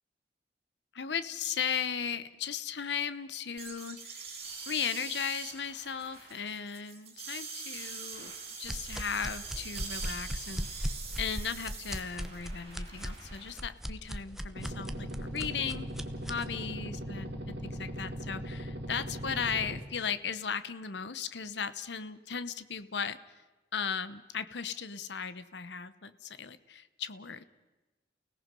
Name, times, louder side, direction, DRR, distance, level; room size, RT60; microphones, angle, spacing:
voice 1, 0.9-4.3 4.7-8.3 8.6-15.9 16.2-23.2 23.7-27.4, left 6 dB, 70° left, 13 dB, 0.9 m, -36 dB
sound 1, 3.6-13.5, right 5 dB, 35° right, 5.4 m, -43 dB
sound 2, 8.6-16.5, equal, ahead, 0.9 m, -38 dB
sound 3, 14.6-19.8, equal, 65° right, 2.4 m, -39 dB
29.5 x 17.5 x 5.3 m, 1.2 s
head